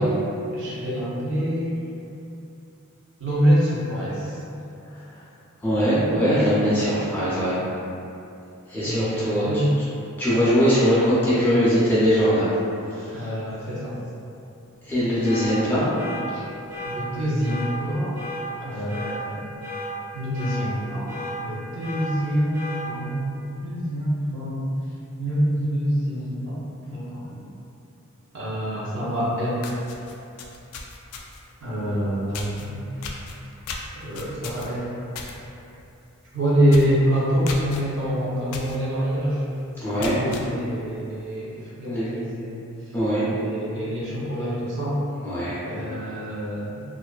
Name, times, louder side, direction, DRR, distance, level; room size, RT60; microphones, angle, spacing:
voice 1, 0.0-1.8 3.2-4.4 8.8-9.7 13.1-14.0 16.3-16.4 16.9-18.2 18.6-19.4 20.1-24.7 25.2-27.5 28.3-29.8 31.6-33.2 34.0-34.9 36.3-39.5 39.8-42.6 43.3-45.0 45.6-46.8, equal, 55° right, -8 dB, 0.7 m, -26 dB
voice 2, 5.6-7.6 8.7-9.6 10.2-12.5 12.9-13.3 14.8-15.9 39.8-40.2 41.9-42.1 42.9-43.3 45.2-45.6, equal, 10° left, -11 dB, 0.5 m, -21 dB
sound 1, 15.2-15.5 16.0-16.2 16.7-17.0 17.4-17.7 18.1-18.4 18.9-19.1 19.6-19.9 20.3-20.6 21.1-21.3 21.8-22.1 22.5-22.8, left 2 dB, 85° right, 1.3 m, -34 dB
sound 2, 29.2-29.3 29.6-31.5 32.3-32.7 33.0-35.4 35.7-36.0 36.2-36.3 36.7-37.0 37.5-37.8 38.5-38.8 39.2-39.3 39.8-40.5, left 4 dB, 80° left, 0.3 m, -36 dB
2.5 x 2.4 x 2.3 m, 2.7 s
head